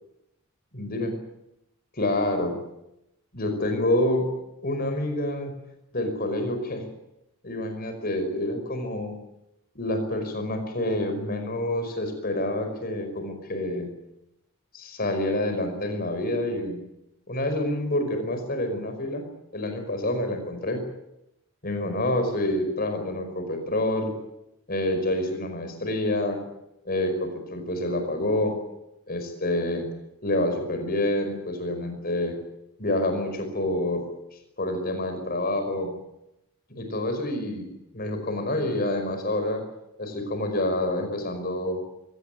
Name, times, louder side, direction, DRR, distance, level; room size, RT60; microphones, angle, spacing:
voice 1, 0.7-1.1 1.9-2.6 3.3-4.3 4.6-5.5 5.9-6.8 7.4-9.1 9.8-13.9 14.7-16.8 17.3-19.2 19.5-20.8 21.6-24.1 24.7-26.4 26.9-28.6 29.1-29.9 30.2-32.4 32.8-34.0 34.6-35.9 36.7-37.6 37.9-39.6 40.0-41.8, left 1 dB, 45° left, 6 dB, 5.1 m, -27 dB
23.0 x 18.0 x 9.3 m, 0.87 s
head